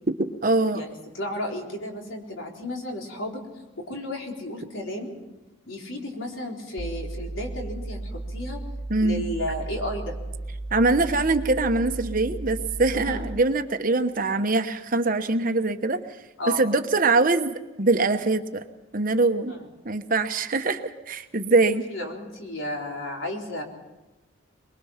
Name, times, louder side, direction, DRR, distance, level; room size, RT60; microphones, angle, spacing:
voice 1, 0.1-0.9 8.9-9.3 10.7-16.0 16.6-18.6 18.9-19.5 19.8-21.8, right 3 dB, 40° right, 8 dB, 1.1 m, -23 dB
voice 2, 0.7-3.4 3.8-5.2 5.7-8.6 9.0-10.2 12.9-13.2 16.4-16.6 19.5-19.7 21.9-23.6, left 1 dB, 70° left, 0 dB, 4.1 m, -33 dB
sound 1, 6.8-13.6, right 2 dB, 55° left, 1.7 m, -35 dB
23.0 x 21.5 x 5.8 m, 1.1 s
head